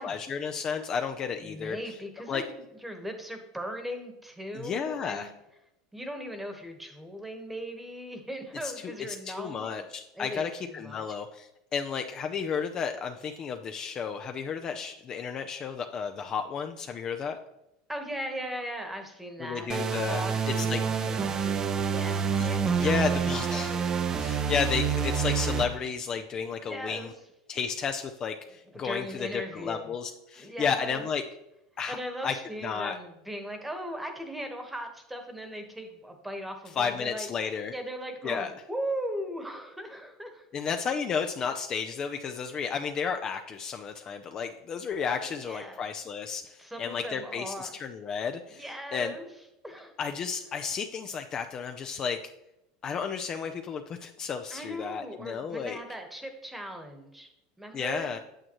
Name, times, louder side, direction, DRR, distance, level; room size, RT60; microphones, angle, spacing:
voice 1, 0.0-1.8 2.3-2.4 4.5-5.3 8.6-8.7 9.1-17.4 19.4-20.2 20.5-20.8 22.4-22.5 22.8-27.1 27.5-31.2 31.8-32.0 32.2-32.3 32.6-33.0 36.8-37.8 38.2-38.5 40.5-48.6 48.9-49.1 50.0-52.2 52.8-55.8 57.7-58.2, left 6 dB, 30° left, 6 dB, 0.5 m, -32 dB
voice 2, 1.4-5.3 5.9-9.7 10.1-11.0 17.9-19.7 20.1-23.6 26.6-27.1 28.8-29.9 30.4-31.1 31.9-37.3 37.6-40.4 45.1-45.9 46.6-47.7 48.5-49.3 49.6-49.9 54.5-57.3 57.6-58.1, equal, 5° right, 5 dB, 1.3 m, -38 dB
sound 1, 19.7-25.6, right 6 dB, 25° right, 0.6 m, -27 dB
8.8 x 7.6 x 3.1 m, 0.89 s
supercardioid pair, 130°, 2 cm